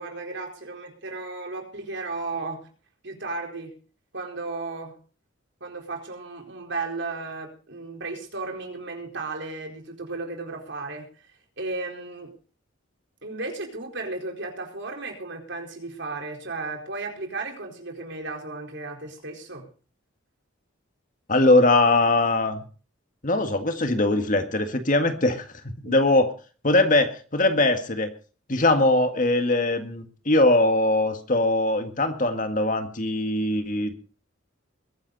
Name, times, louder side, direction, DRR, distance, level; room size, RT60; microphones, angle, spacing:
voice 1, 0.0-2.7 3.0-3.7 4.1-5.0 5.6-11.1 11.6-12.3 13.2-19.7 25.8-25.9, right 3 dB, 60° right, 2 dB, 4.4 m, -34 dB
voice 2, 21.3-22.6 23.2-26.3 26.6-28.1 28.5-33.9, left 2 dB, 40° left, 7 dB, 1.9 m, -21 dB
22.0 x 10.5 x 4.1 m, 0.37 s
head